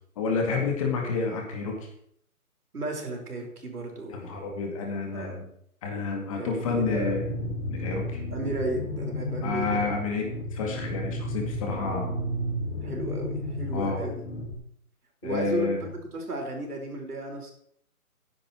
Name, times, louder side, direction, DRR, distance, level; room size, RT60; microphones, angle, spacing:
voice 1, 0.2-1.8 4.1-5.5 5.8-8.2 9.4-12.1 13.7-14.0 15.2-15.8, left 4 dB, 25° left, 1 dB, 2.2 m, -30 dB
voice 2, 2.7-4.5 5.1-5.4 6.4-7.2 8.3-9.9 12.8-14.2 15.2-17.5, right 1 dB, 85° right, 1 dB, 5.3 m, -34 dB
sound 1, 6.6-14.5, left 1 dB, 55° left, 4.5 m, -33 dB
13.5 x 10.0 x 4.6 m, 0.69 s
hypercardioid pair, 165°, 44 cm